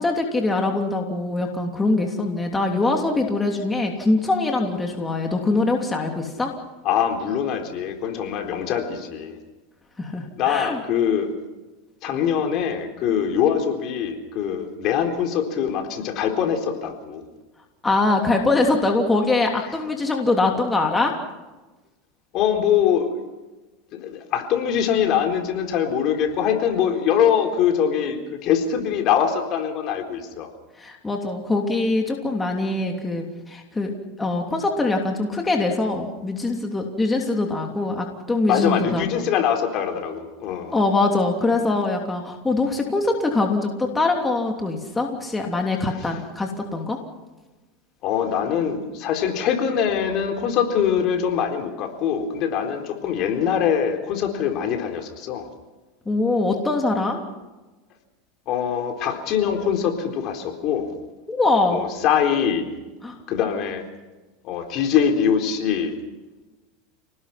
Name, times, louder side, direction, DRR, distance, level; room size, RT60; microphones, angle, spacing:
voice 1, 0.0-6.5 10.0-10.8 17.8-21.1 30.8-33.9 34.2-39.1 40.7-47.0 56.1-57.2 61.3-61.9 63.0-63.2, left 2 dB, 10° left, 2 dB, 3.1 m, -23 dB
voice 2, 6.8-9.4 10.4-11.3 12.0-17.2 22.3-23.1 23.9-30.5 38.5-40.7 46.0-46.1 48.0-55.5 58.5-60.9 61.7-62.7 63.3-63.8 64.4-66.0, left 8 dB, 50° left, 4 dB, 4.1 m, -23 dB
29.0 x 19.5 x 6.0 m, 1.1 s
supercardioid pair, 125°, 0 cm